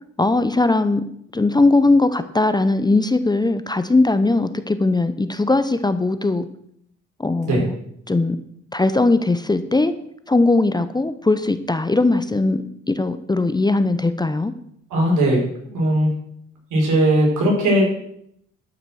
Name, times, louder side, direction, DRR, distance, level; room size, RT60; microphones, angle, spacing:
voice 1, 0.2-1.0 1.3-6.4 7.2-7.8 8.1-8.4 8.7-9.9 10.3-14.5, left 2 dB, 15° left, 11 dB, 0.7 m, -19 dB
voice 2, 14.9-15.4 15.7-16.1 16.7-18.0, right 1 dB, 80° right, -2 dB, 5.1 m, -18 dB
12.0 x 5.9 x 6.3 m, 0.71 s
cardioid pair, 90°, 30 cm